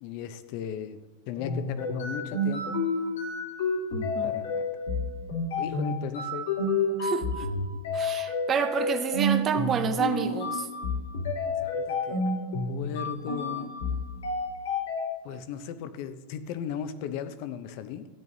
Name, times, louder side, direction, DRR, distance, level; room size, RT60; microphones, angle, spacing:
voice 1, 0.0-1.0 1.3-2.8 4.2-4.7 5.6-6.5 11.6-12.3 12.7-13.8 15.2-18.1, left 8 dB, 50° left, 11 dB, 0.7 m, -36 dB
sound 1, 1.3-15.0, left 2 dB, 90° left, 3.0 m, -30 dB
voice 2, 3.9-4.3 7.0-7.5 7.9-10.7, right 6 dB, 25° right, 10 dB, 0.6 m, -29 dB
13.5 x 9.1 x 2.7 m, 1.2 s
supercardioid pair, 150°, 0 cm